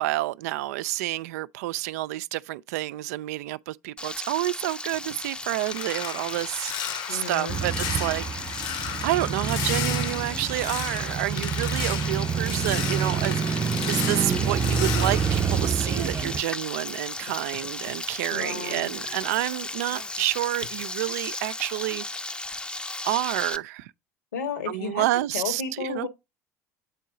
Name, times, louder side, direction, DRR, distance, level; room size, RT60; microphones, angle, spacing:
voice 1, 0.0-6.7 7.1-8.5 9.0-22.0 23.0-23.9 24.7-26.1, right 17 dB, 70° right, 0.4 m, -29 dB
Frying (food), 4.0-23.6, left 2 dB, 10° left, 0.6 m, -36 dB
sound 1, 4.9-16.6 16.9-19.6 19.9-20.2 20.6-20.9, left 9 dB, 55° left, 0.9 m, -35 dB
voice 2, 7.1-7.6 18.3-18.9 24.3-25.0 25.3-26.1, left 5 dB, 80° left, 1.6 m, -32 dB
Male speech man speaking / Motorcycle / Idling, 7.5-16.4, right 7 dB, 30° right, 0.7 m, -28 dB
8.2 x 4.6 x 3.7 m
hypercardioid pair, 70°, 9 cm